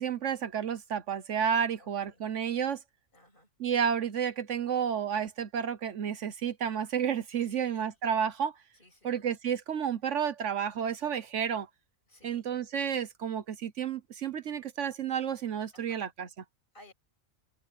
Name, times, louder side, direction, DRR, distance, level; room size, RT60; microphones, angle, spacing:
voice 1, 0.0-2.8 3.6-8.6 9.0-11.7 12.2-16.3, right 8 dB, 70° right, 1.2 m, -31 dB
voice 2, 1.8-2.3 3.1-3.5 7.4-8.0 8.8-9.2 12.1-12.5 15.7-16.1 16.7-16.9, left 1 dB, 40° left, 7.1 m, -58 dB
omnidirectional pair, 1.3 m